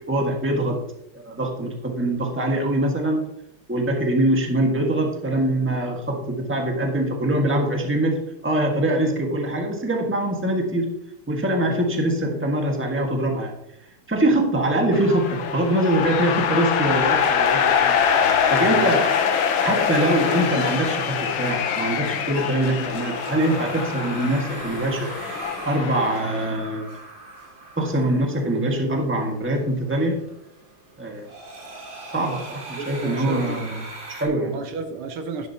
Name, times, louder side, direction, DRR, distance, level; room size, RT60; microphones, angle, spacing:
voice 1, 0.1-0.8 1.1-3.2 3.7-10.9 11.3-13.5 14.1-18.0 18.5-19.1 19.6-25.1 25.6-26.9 27.8-30.2 31.0-31.3 32.1-34.6, right 1 dB, 5° right, 1 dB, 1.4 m, -23 dB
sound 1, 14.9-26.5, left 7 dB, 75° left, 1.7 m, -24 dB
sound 2, 17.4-34.3, right 2 dB, 65° right, 3.3 m, -39 dB
voice 2, 18.6-18.9 32.8-33.6 34.5-35.5, right 4 dB, 85° right, 7 dB, 1.9 m, -33 dB
11.5 x 10.5 x 2.9 m, 0.83 s
omnidirectional pair, 2.3 m